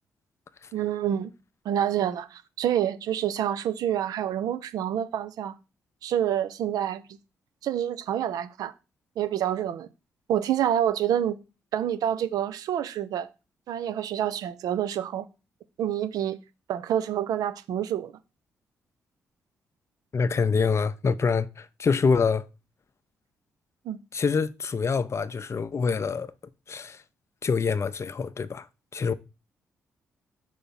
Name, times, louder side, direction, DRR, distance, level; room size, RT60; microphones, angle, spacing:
voice 1, 0.7-1.3 1.6-5.5 6.0-7.0 7.6-8.7 9.2-9.9 10.3-11.4 11.7-13.3 13.7-15.2 15.8-16.4 16.7-18.1 23.8-24.0, right 10 dB, 70° right, 0.6 m, -27 dB
voice 2, 20.1-22.5 24.1-26.3 26.7-27.0 27.4-28.7 28.9-29.1, left 5 dB, 45° left, 0.6 m, -25 dB
5.2 x 3.3 x 5.4 m
hypercardioid pair, 40°, 7 cm